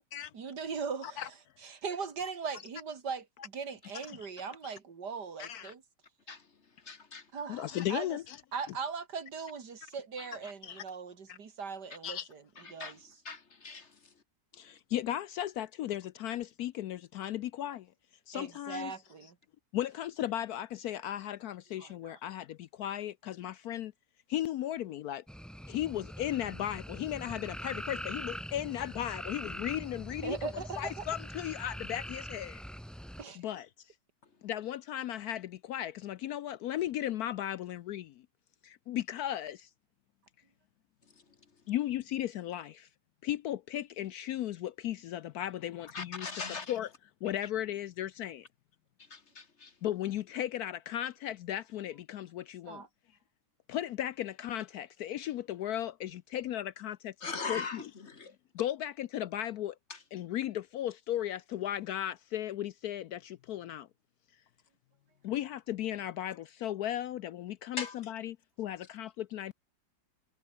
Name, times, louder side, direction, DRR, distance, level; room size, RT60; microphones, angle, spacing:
voice 1, 0.3-1.3 1.6-3.3 3.5-5.8 7.3-8.2 8.5-12.4 12.7-13.2 18.3-19.4 21.8-22.2 30.2-31.0 33.2-33.4 52.7-52.9, right 5 dB, 70° right, 2.8 m, -39 dB
voice 2, 5.4-5.7 7.5-8.4 10.6-10.8 11.3-11.4 12.0-12.3 14.5-17.9 18.3-18.9 19.7-23.9 24.3-25.2 25.7-32.6 33.4-33.9 34.4-38.3 38.6-39.7 41.7-42.9 43.2-46.9 47.2-48.5 49.8-52.9 53.7-57.9 58.5-59.8 60.1-63.9 65.2-69.5, left 12 dB, 70° left, 1.0 m, -36 dB
voice 3, 6.8-7.2 10.2-10.3 12.6-13.0 13.2-13.9 45.9-46.7 49.1-49.7 57.2-58.3 59.9-60.0 67.8-67.9, left 4 dB, 40° left, 1.6 m, -40 dB
sound 1, 25.3-33.2, equal, ahead, 2.5 m, -43 dB
omnidirectional pair, 1.9 m